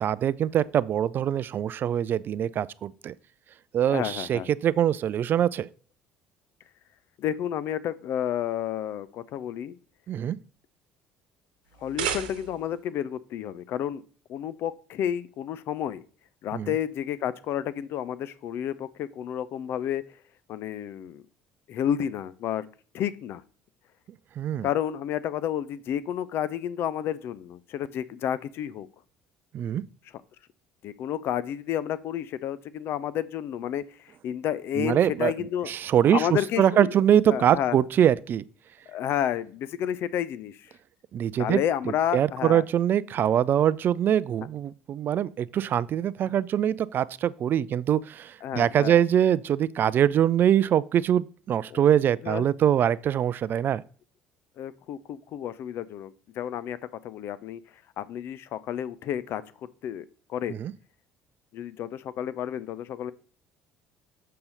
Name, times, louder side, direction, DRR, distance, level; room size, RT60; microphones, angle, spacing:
voice 1, 0.0-3.1 3.7-5.7 10.1-10.4 16.5-16.7 24.4-24.7 29.5-29.8 34.8-35.3 35.7-36.3 36.6-38.4 41.1-41.6 42.1-53.8 60.5-60.7, right 10 dB, 45° right, 0.4 m, -23 dB
voice 2, 3.9-4.5 7.2-9.8 11.8-14.0 14.3-16.0 16.4-20.0 20.5-21.2 21.7-22.6 22.9-23.4 24.6-28.9 30.8-35.7 36.1-37.0 37.3-37.8 38.9-40.7 41.4-42.6 48.4-49.0 51.7-51.8 52.2-52.5 54.6-56.8 57.0-57.6 58.0-59.4 59.8-60.5 61.5-63.1, left 10 dB, 55° left, 0.6 m, -31 dB
sound 1, 11.7-12.8, right 9 dB, 70° right, 1.0 m, -33 dB
6.9 x 6.6 x 4.0 m
figure-of-eight pair, 55°, 5 cm